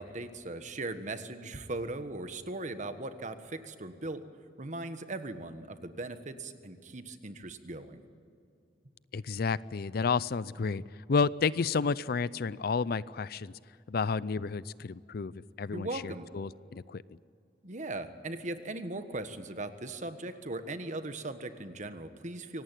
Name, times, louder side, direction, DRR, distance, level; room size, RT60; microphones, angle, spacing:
voice 1, 0.0-4.2 4.6-8.0 15.7-16.3 17.6-22.6, right 2 dB, 45° right, 9 dB, 1.5 m, -39 dB
voice 2, 9.1-10.8 11.1-13.5 13.9-15.3 15.6-17.0, left 5 dB, 60° left, 19 dB, 0.5 m, -31 dB
25.5 x 18.0 x 9.2 m, 2.5 s
head